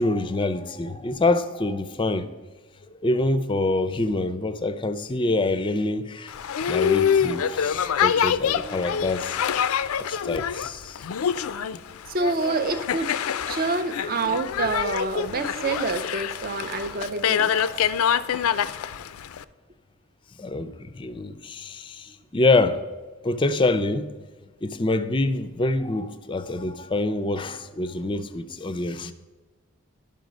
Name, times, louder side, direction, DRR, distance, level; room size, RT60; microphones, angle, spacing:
voice 1, 0.0-2.3 3.0-6.4 6.7-9.4 10.1-11.0 17.5-18.3 18.5-18.8 20.4-22.8 23.2-24.1 24.6-29.1, left 2 dB, 25° left, 0.4 m, -26 dB
Boat Water vehicle, 6.3-19.4, left 8 dB, 85° left, 0.4 m, -26 dB
voice 2, 12.1-13.1 13.4-17.5 29.0-29.1, right 3 dB, 45° right, 0.5 m, -27 dB
11.0 x 5.6 x 5.2 m
head